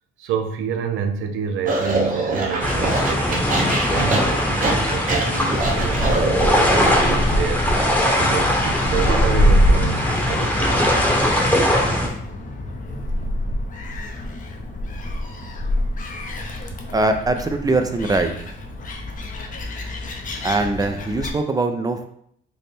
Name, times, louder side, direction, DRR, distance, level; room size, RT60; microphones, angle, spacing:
voice 1, 0.2-7.9 8.2-10.8, right 7 dB, 85° right, 5 dB, 0.5 m, -28 dB
sound 1, 1.7-7.1, right 2 dB, 45° right, 0.8 m, -24 dB
sound 2, 2.6-12.1, left 1 dB, 10° left, 0.9 m, -20 dB
Gull seagull, 5.6-21.3, equal, 40° left, 0.6 m, -25 dB
voice 2, 16.9-18.3 20.4-22.0, right 2 dB, 20° right, 7 dB, 0.4 m, -21 dB
3.3 x 2.0 x 4.2 m, 0.66 s
cardioid pair, 90°, 20 cm